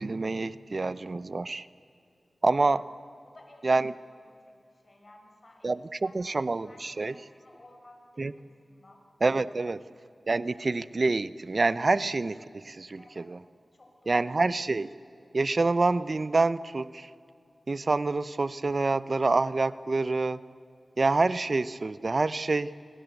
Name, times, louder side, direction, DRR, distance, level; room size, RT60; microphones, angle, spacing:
voice 1, 0.0-1.7 2.4-2.8 3.6-3.9 5.6-7.1 8.2-8.3 9.2-9.8 10.3-13.4 14.1-14.9 15.3-17.1 17.7-20.4 21.0-22.8, right 3 dB, 50° right, 16 dB, 0.6 m, -27 dB
voice 2, 3.2-3.7 4.0-5.8 6.0-9.0 9.8-9.9 13.0-13.4 13.7-14.3, left 1 dB, 45° left, 3 dB, 5.4 m, -56 dB
29.0 x 25.0 x 8.2 m, 2.6 s
wide cardioid pair, 65°, 0 cm